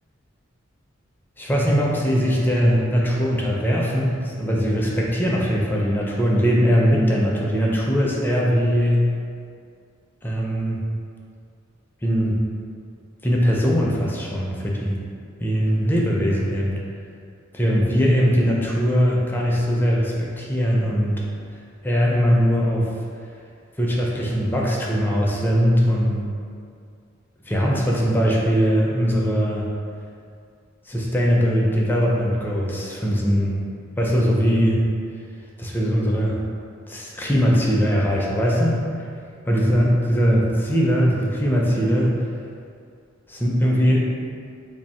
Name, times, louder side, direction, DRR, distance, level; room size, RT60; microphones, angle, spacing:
voice 1, 1.4-9.1 10.2-10.8 12.0-12.4 13.2-15.0 15.4-16.8 17.5-21.2 21.8-22.9 23.8-26.2 27.5-29.7 30.9-33.6 34.0-34.8 35.6-36.4 36.9-39.1 39.5-42.2 43.3-44.1, equal, 10° left, -3 dB, 0.4 m, -20 dB
2.7 x 2.6 x 4.2 m, 2.3 s
head